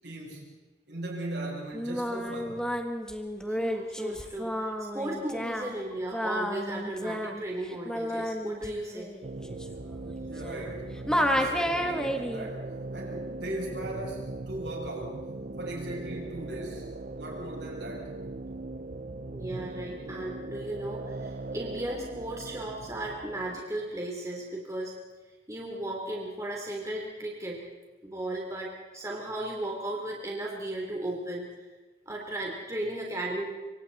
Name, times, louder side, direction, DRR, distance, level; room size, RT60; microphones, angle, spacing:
voice 1, 0.0-0.6 0.9-2.8 10.3-15.3 15.6-18.1, right 1 dB, 75° right, -2 dB, 7.9 m, -39 dB
Singing, 1.7-10.8 11.1-12.5, equal, 5° left, 1.6 m, -31 dB
voice 2, 3.5-9.1 19.3-24.9 25.5-27.6 28.0-31.6 32.1-33.5, right 1 dB, 15° right, -2 dB, 3.6 m, -35 dB
sound 1, 9.2-23.6, right 2 dB, 50° right, 0.7 m, -39 dB
27.0 x 25.0 x 4.3 m, 1.2 s
head